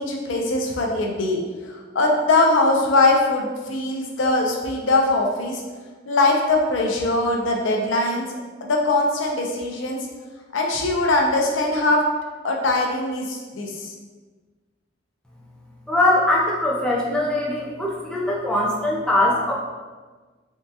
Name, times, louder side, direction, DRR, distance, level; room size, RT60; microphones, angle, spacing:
voice 1, 0.0-1.4 1.7-5.6 6.1-8.2 8.6-10.0 10.5-12.0 12.4-13.9, left 2 dB, 85° left, 0 dB, 0.5 m, -21 dB
voice 2, 15.9-19.5, left 1 dB, 5° left, -5 dB, 0.5 m, -21 dB
3.6 x 2.3 x 2.7 m, 1.4 s
head